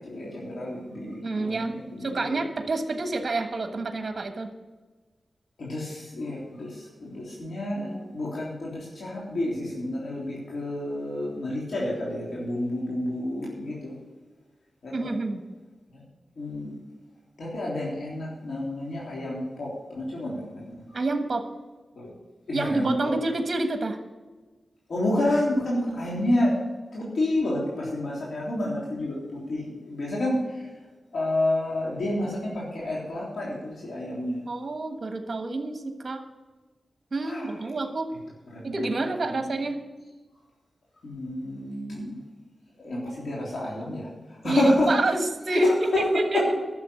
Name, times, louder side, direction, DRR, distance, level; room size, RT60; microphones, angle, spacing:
voice 1, 0.0-2.4 5.6-13.9 14.8-15.1 15.9-16.0 16.4-16.7 17.4-20.8 22.0-22.1 22.5-23.1 24.9-26.6 26.9-30.7 31.1-34.4 37.2-37.5 38.5-39.5 41.0-42.1 42.8-44.1 44.4-45.0 45.5-46.1 46.3-46.4, left 1 dB, 75° left, -5 dB, 3.5 m, -29 dB
voice 2, 1.2-1.7 2.0-4.5 14.9-15.4 20.9-21.4 22.5-24.0 34.5-36.2 37.1-38.1 38.6-39.8 44.4-46.4, right 2 dB, 50° right, 6 dB, 1.4 m, -28 dB
11.5 x 7.2 x 8.3 m, 1.3 s
cardioid pair, 60°, 0 cm